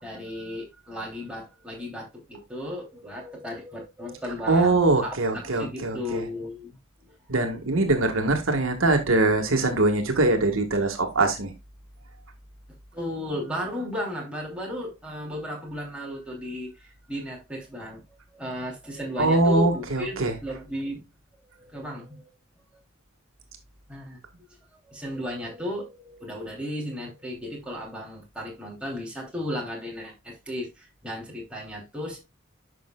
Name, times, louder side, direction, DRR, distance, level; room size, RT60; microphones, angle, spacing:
voice 1, 0.0-7.2 12.9-18.0 18.3-21.0 21.6-22.3 23.9-24.2 24.7-32.2, equal, 5° right, 2.9 m, -35 dB
voice 2, 4.5-6.2 7.3-11.5 19.2-20.3, right 2 dB, 70° right, 1.6 m, -22 dB
10.5 x 6.1 x 2.3 m
head